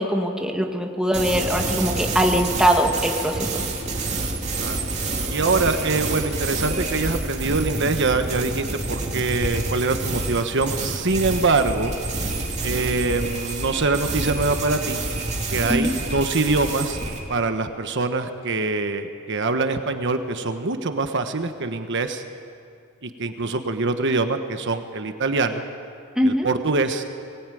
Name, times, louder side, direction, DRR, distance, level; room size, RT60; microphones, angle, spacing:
voice 1, 0.0-3.6 15.7-16.0 26.2-26.5, equal, 5° right, 1 dB, 2.0 m, -22 dB
sound 1, 1.1-17.2, right 2 dB, 35° right, 3.0 m, -28 dB
voice 2, 5.3-11.9 12.6-15.0 15.5-17.0 17.3-22.2 23.0-25.6 26.2-27.0, right 3 dB, 60° right, 7 dB, 1.2 m, -24 dB
23.0 x 19.0 x 9.3 m, 2.4 s
head